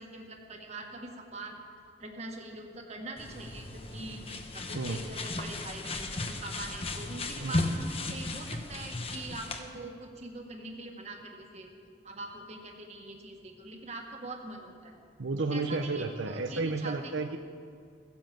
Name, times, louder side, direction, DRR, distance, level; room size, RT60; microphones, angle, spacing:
voice 1, 0.0-1.6 2.0-4.2 4.5-11.7 12.0-15.0 15.5-17.1, right 2 dB, 35° right, 2 dB, 1.7 m, -43 dB
sound 1, 3.2-9.6, left 2 dB, 30° left, 1.0 m, -35 dB
voice 2, 15.2-17.4, right 3 dB, 80° right, 5 dB, 0.8 m, -32 dB
16.0 x 10.5 x 7.6 m, 2.2 s
head